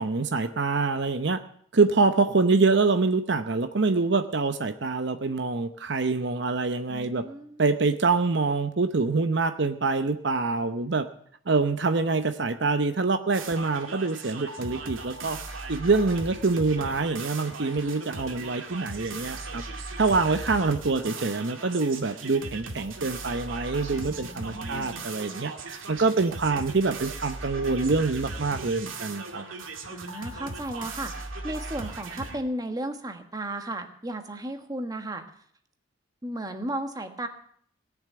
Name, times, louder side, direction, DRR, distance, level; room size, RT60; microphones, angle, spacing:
voice 1, 0.0-1.4 1.7-7.2 7.6-11.1 11.5-15.4 15.7-19.6 20.0-29.4, right 3 dB, 60° right, 9 dB, 0.8 m, -25 dB
voice 2, 6.9-7.6 16.8-16.9 24.0-25.0 29.9-35.2 36.2-37.3, right 1 dB, 20° right, 6 dB, 1.4 m, -35 dB
sound 1, 13.3-32.4, right 3 dB, 85° right, 2.3 m, -38 dB
18.5 x 7.2 x 9.4 m, 0.62 s
head